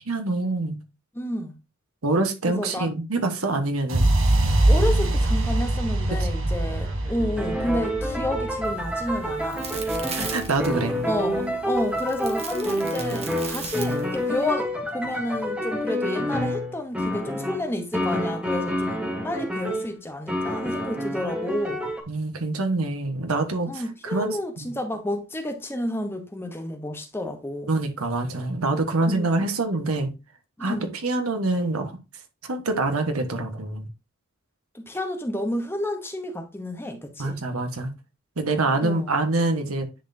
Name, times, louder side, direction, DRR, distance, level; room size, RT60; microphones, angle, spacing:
voice 1, 0.1-0.8 2.0-4.1 6.4-6.5 10.1-10.9 22.1-24.7 27.7-30.1 30.6-30.8 31.0-31.9 32.4-33.9 37.2-37.9 38.4-39.9, right 2 dB, 90° right, 1.3 m, -25 dB
voice 2, 1.1-1.5 2.6-2.9 4.7-9.7 11.0-21.8 23.7-27.7 29.1-29.4 30.6-30.9 34.7-37.4 38.8-39.1, left 1 dB, 10° left, 0.9 m, -30 dB
sound 1, 3.9-11.8, right 1 dB, 65° right, 1.2 m, -24 dB
sound 2, 6.7-19.9 20.3-22.0, equal, 5° right, 1.2 m, -28 dB
sound 3, 8.6-14.5, right 5 dB, 30° right, 1.2 m, -38 dB
10.0 x 4.2 x 2.7 m
head